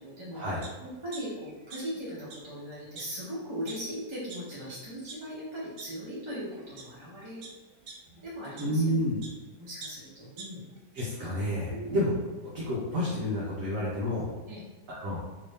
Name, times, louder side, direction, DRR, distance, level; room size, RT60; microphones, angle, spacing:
voice 1, 0.0-7.5 8.2-9.0 9.6-10.6 11.7-12.0 14.5-14.6, equal, 25° right, -10 dB, 0.7 m, -39 dB
sound 1, 0.6-0.7 1.1-2.0 2.3-2.4 3.0-3.1 3.7-3.8 4.3-4.4 4.9-5.2 5.8-5.9 6.5-6.8 7.4-9.4 9.8-11.0 11.4-11.5, right 4 dB, 85° right, 1.3 m, -45 dB
voice 2, 8.6-9.2 10.9-12.1 12.5-14.3 14.9-15.2, equal, 60° right, -7 dB, 1.0 m, -29 dB
3.1 x 2.6 x 3.4 m, 1.2 s
omnidirectional pair, 1.9 m